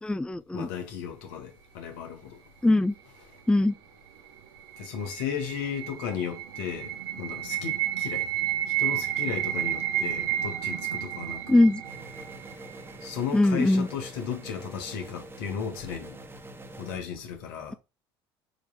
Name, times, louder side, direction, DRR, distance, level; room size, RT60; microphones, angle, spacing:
voice 1, 0.0-0.7 2.6-2.9 3.5-3.7 11.5-11.8 13.3-13.9, left 2 dB, 5° left, 0.5 m, -21 dB
voice 2, 0.5-2.4 4.8-8.3 8.8-11.7 13.0-16.2 16.8-17.7, left 7 dB, 80° left, 1.7 m, -35 dB
sound 1, 4.4-13.4, right 12 dB, 85° right, 1.2 m, -31 dB
sound 2, 11.8-17.0, right 2 dB, 20° right, 1.4 m, -45 dB
6.3 x 3.3 x 5.9 m
hypercardioid pair, 70°, 12 cm